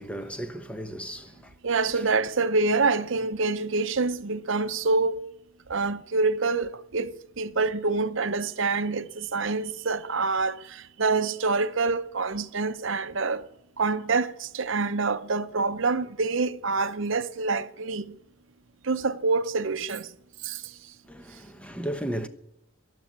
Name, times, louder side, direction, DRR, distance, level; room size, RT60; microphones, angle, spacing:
voice 1, 0.0-1.5 21.1-22.3, equal, 5° left, 0.9 m, -35 dB
voice 2, 1.6-5.3 5.7-13.4 13.8-18.1 18.8-20.1 20.4-20.8, right 3 dB, 65° right, 0.8 m, -26 dB
13.0 x 12.0 x 9.5 m
head